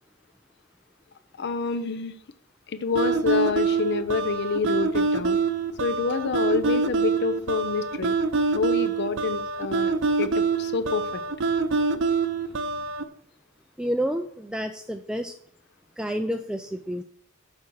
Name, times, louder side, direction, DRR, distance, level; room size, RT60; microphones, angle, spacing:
voice 1, 1.4-2.2 2.7-5.4 5.8-8.2 8.5-9.9 10.2-11.2, left 4 dB, 55° left, 12 dB, 0.6 m, -27 dB
sound 1, 3.0-13.0, right 4 dB, 60° right, 0.6 m, -25 dB
voice 2, 13.8-15.3 16.0-17.0, equal, 5° right, 6 dB, 0.4 m, -29 dB
7.3 x 6.1 x 6.3 m, 0.64 s
head